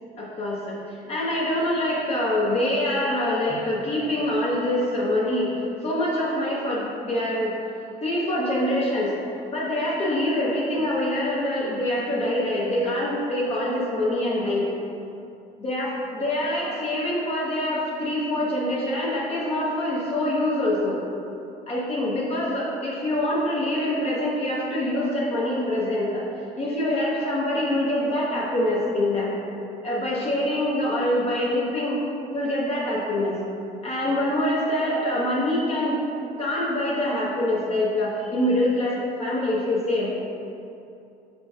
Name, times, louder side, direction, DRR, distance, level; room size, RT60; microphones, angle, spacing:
voice 1, 0.2-7.6 8.0-9.1 9.5-14.7 15.6-21.0 21.7-26.2 26.6-29.3 29.8-32.0 32.3-33.4 33.8-36.1 36.4-40.2, left 1 dB, 35° left, -5 dB, 0.8 m, -25 dB
5.0 x 3.9 x 2.3 m, 2.7 s
cardioid pair, 110°, 17 cm